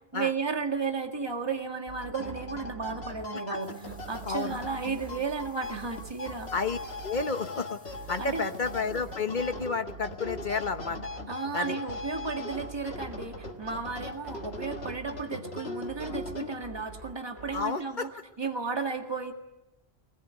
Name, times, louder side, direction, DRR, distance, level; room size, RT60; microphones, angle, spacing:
voice 1, 0.1-6.5 8.2-8.5 11.3-18.1 18.4-19.3, right 4 dB, 25° right, 4 dB, 1.9 m, -34 dB
sound 1, 1.9-16.9, left 2 dB, 70° left, 2.1 m, -40 dB
sound 2, 1.9-17.8, right 5 dB, 90° right, 2.8 m, -47 dB
sound 3, 3.6-9.5 12.3-12.4 12.5-12.6 13.2-13.3 13.5-13.6 14.0-14.2 15.6-15.9 16.4-16.5 17.1-17.6 18.2-18.3, equal, 5° left, 6.1 m, -60 dB
voice 2, 4.2-4.6 6.5-7.8 8.1-11.0 11.5-11.8 17.5-18.1, left 4 dB, 45° left, 8 dB, 1.3 m, -31 dB
21.0 x 20.5 x 9.4 m, 0.95 s
omnidirectional pair, 1.1 m